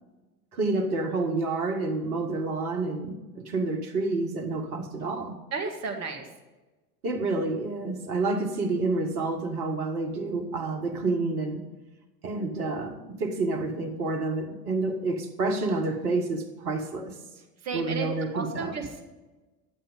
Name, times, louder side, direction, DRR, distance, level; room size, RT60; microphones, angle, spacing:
voice 1, 0.5-5.4 7.0-11.6 12.2-17.2 17.7-18.8, right 3 dB, 65° right, 4 dB, 1.8 m, -29 dB
voice 2, 5.5-6.3 17.6-18.1 18.3-19.0, right 4 dB, 35° right, 5 dB, 2.1 m, -32 dB
11.5 x 7.7 x 5.1 m, 1.2 s
figure-of-eight pair, 75°, 47 cm